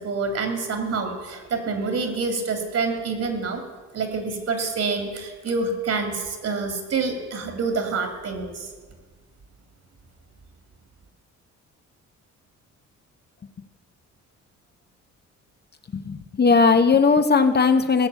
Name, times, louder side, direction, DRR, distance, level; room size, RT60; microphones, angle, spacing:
voice 1, 0.0-3.6 3.9-8.7, right 4 dB, 55° right, 6 dB, 2.7 m, -27 dB
voice 2, 15.9-18.1, left 4 dB, 35° left, 8 dB, 0.9 m, -18 dB
17.5 x 6.7 x 8.3 m, 1.4 s
cardioid pair, 90°, 30 cm